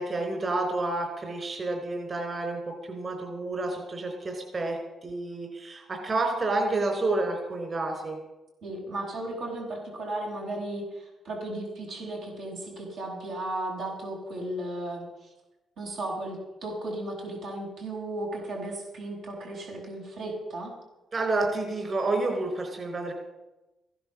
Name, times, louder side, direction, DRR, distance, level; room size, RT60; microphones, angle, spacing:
voice 1, 0.0-8.2 21.1-23.1, right 2 dB, 45° right, 3 dB, 4.5 m, -29 dB
voice 2, 8.6-15.3 15.8-20.7, right 1 dB, 85° right, -2 dB, 7.2 m, -35 dB
15.5 x 11.0 x 7.5 m, 1.0 s
cardioid pair, 70°, 0 cm